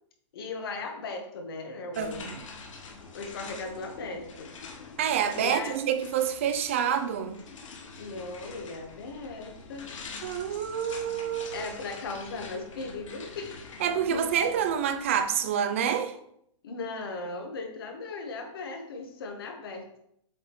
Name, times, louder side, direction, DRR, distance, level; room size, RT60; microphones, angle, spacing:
voice 1, 0.3-2.3 3.1-4.5 5.4-5.7 8.0-9.9 10.9-11.0 11.5-13.7 14.1-14.3 16.6-20.0, left 3 dB, 50° left, 1.3 m, -37 dB
sound 1, 1.9-15.5, left 4 dB, 75° left, 1.2 m, -45 dB
voice 2, 2.0-2.4 5.0-7.4 10.2-11.7 13.8-16.2, right 8 dB, 25° right, 0.4 m, -27 dB
7.7 x 4.9 x 3.1 m
hypercardioid pair, 180°, 16 cm